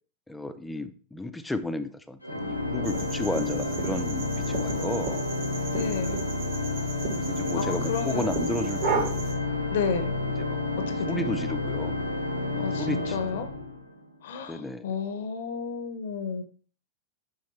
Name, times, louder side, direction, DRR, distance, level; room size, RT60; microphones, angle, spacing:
voice 1, 0.3-5.2 7.3-9.2 10.5-10.6 11.1-12.0 12.5-13.4 14.5-14.9, left 2 dB, 5° left, 9 dB, 0.5 m, -33 dB
Organ, 2.2-14.1, left 2 dB, 90° right, 0.7 m, -30 dB
sound 1, 2.8-9.3, right 3 dB, 55° right, 2.6 m, -34 dB
voice 2, 5.7-6.2 7.6-8.3 9.7-10.1 10.9-11.3 12.6-13.5 14.2-16.4, left 5 dB, 60° left, 9 dB, 0.8 m, -32 dB
8.6 x 3.5 x 3.3 m, 0.42 s
figure-of-eight pair, 90°, 0 cm